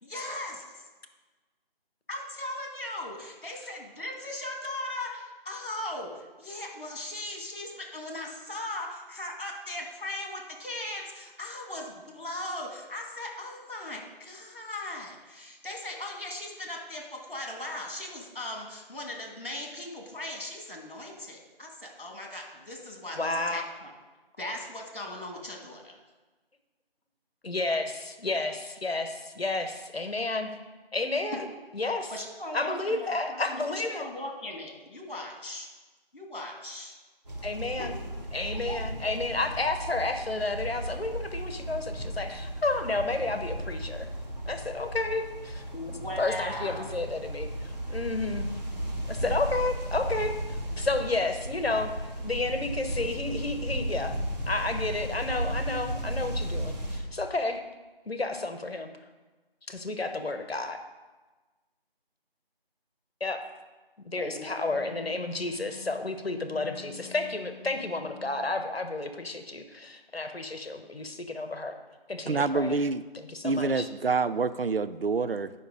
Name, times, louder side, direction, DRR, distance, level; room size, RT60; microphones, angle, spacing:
voice 1, 0.0-0.9 2.1-23.9 24.4-26.0 31.3-31.4 32.1-35.7 36.1-36.9 37.8-37.9 38.5-38.8 45.7-46.9 64.2-64.6, left 1 dB, 60° left, 1 dB, 2.5 m, -38 dB
voice 2, 23.1-23.6 27.4-30.5 30.9-31.5 31.7-32.1 32.5-34.1 37.4-37.9 38.3-44.1 44.5-48.5 49.1-54.2 54.5-57.6 58.1-58.9 59.7-60.8 63.2-63.4 64.0-71.8 72.1-72.7 73.1-73.9, left 2 dB, 75° left, 7 dB, 1.2 m, -31 dB
sound 1, 37.2-57.0, right 1 dB, 40° right, 1.8 m, -35 dB
Wind instrument woodwind instrument, 64.5-68.6, left 6 dB, 5° left, 2.3 m, -48 dB
voice 3, 72.3-73.0 73.4-75.5, right 4 dB, 70° right, 13 dB, 0.6 m, -27 dB
10.0 x 5.5 x 5.2 m, 1.2 s
figure-of-eight pair, 175°, 30 cm